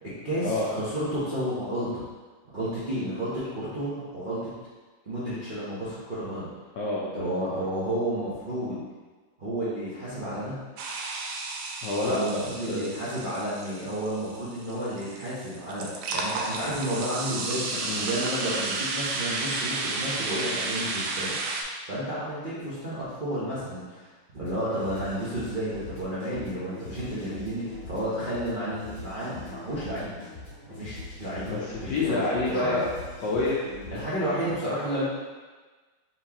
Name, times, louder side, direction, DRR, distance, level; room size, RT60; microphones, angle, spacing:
voice 1, 0.0-2.0 2.5-4.5 5.0-6.5 7.1-8.8 9.4-10.5 12.0-17.6 18.0-21.4 21.9-24.1 24.3-30.1 30.7-31.5 31.8-32.2 32.5-32.8 33.9-35.0, right 1 dB, 50° right, -11 dB, 0.6 m, -31 dB
voice 2, 6.7-7.7 11.8-12.8 17.7-18.1 31.5-32.9 33.2-34.3, left 2 dB, 70° left, -5 dB, 1.1 m, -29 dB
sound 1, 10.8-21.6, right 3 dB, 75° right, 1.1 m, -32 dB
sound 2, 24.4-34.1, left 2 dB, 55° left, 2.0 m, -43 dB
4.4 x 3.8 x 2.9 m, 1.3 s
omnidirectional pair, 2.4 m